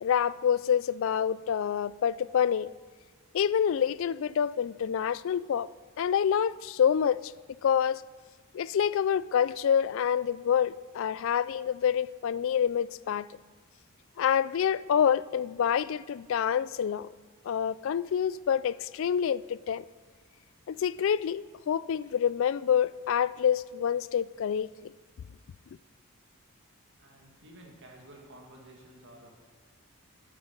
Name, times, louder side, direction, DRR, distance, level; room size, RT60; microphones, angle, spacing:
voice 1, 0.0-2.7 3.3-5.7 6.0-7.3 7.6-8.0 8.5-13.3 14.2-17.1 17.4-19.8 20.7-24.9, left 8 dB, 65° left, 0.3 m, -27 dB
voice 2, 27.0-29.3, right 1 dB, 60° right, 2.2 m, -52 dB
11.5 x 9.0 x 5.5 m
head